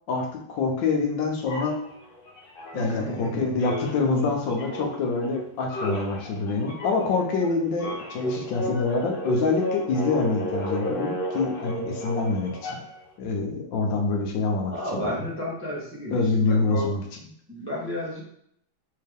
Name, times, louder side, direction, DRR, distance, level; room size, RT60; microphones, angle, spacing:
voice 1, 0.1-1.8 2.7-12.8 13.2-15.3 16.1-17.0, left 4 dB, 75° left, 1 dB, 1.4 m, -26 dB
sound 1, 1.5-3.3 3.6-13.1, equal, 55° left, 0.6 m, -33 dB
voice 2, 2.7-3.7 14.7-16.9 17.5-18.2, equal, 15° right, -5 dB, 0.5 m, -32 dB
3.6 x 3.4 x 3.4 m, 0.68 s
omnidirectional pair, 2.1 m